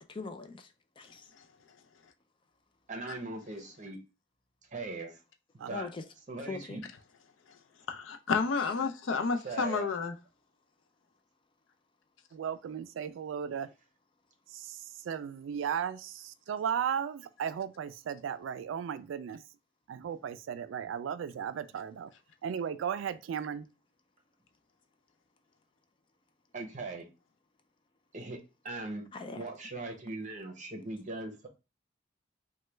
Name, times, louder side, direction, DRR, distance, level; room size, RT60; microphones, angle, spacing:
voice 1, 0.1-1.3 5.7-6.0 6.5-6.8 29.1-29.5, left 3 dB, 25° left, 0.3 m, -41 dB
voice 2, 2.9-4.0 4.7-5.2 5.7-5.9 6.3-6.8 9.4-9.9 26.5-27.1 28.1-29.1 29.4-31.5, right 3 dB, 40° right, 0.7 m, -40 dB
voice 3, 7.9-10.1, left 5 dB, 90° left, 0.5 m, -30 dB
voice 4, 12.3-13.7 14.5-19.4 19.9-22.1 22.4-23.7, right 8 dB, 85° right, 0.3 m, -36 dB
3.1 x 2.2 x 3.2 m
head